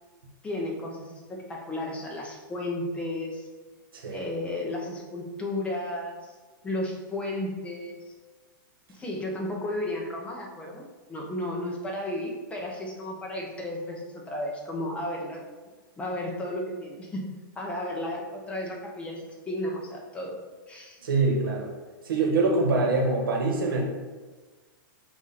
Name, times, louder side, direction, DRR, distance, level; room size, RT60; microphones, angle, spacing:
voice 1, 0.4-3.5 4.1-6.3 6.6-8.1 8.9-15.4 16.0-17.2 17.6-20.4 20.7-21.0, left 1 dB, 10° left, -1 dB, 1.0 m, -33 dB
voice 2, 21.0-21.7 22.0-23.8, right 3 dB, 85° right, -1 dB, 1.6 m, -24 dB
8.0 x 2.8 x 4.2 m, 1.3 s
hypercardioid pair, 145°, 11 cm